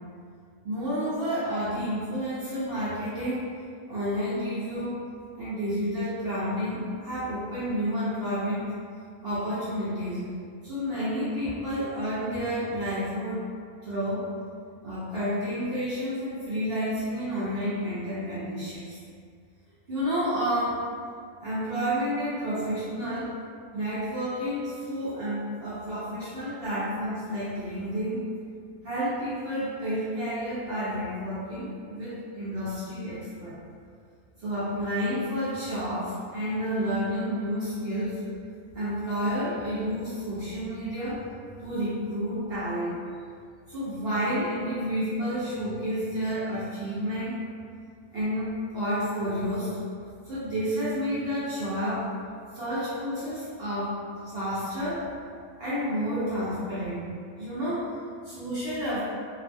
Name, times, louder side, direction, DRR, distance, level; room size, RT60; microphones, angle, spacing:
voice 1, 0.6-3.5 3.9-5.0 5.4-8.7 9.2-10.3 10.6-13.5 13.8-14.3 14.8-19.0 19.9-20.8 21.4-23.4 23.7-28.2 28.8-33.6 34.4-38.2 38.7-41.2 41.6-43.0 43.7-47.4 48.1-49.8 50.2-52.1 52.5-55.1 55.6-57.1 57.4-59.0, equal, 55° right, -11 dB, 0.7 m, -30 dB
2.6 x 2.4 x 2.5 m, 2.1 s
omnidirectional pair, 1.6 m